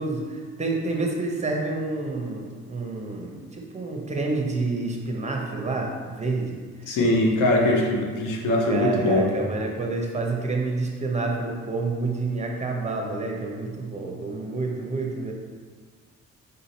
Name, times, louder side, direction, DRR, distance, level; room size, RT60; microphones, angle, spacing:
voice 1, 0.0-6.9 8.7-15.3, right 3 dB, 25° right, 1 dB, 0.7 m, -29 dB
voice 2, 6.9-9.3, left 1 dB, 85° left, 0 dB, 0.8 m, -21 dB
4.0 x 2.7 x 4.1 m, 1.5 s
cardioid pair, 90°, 30 cm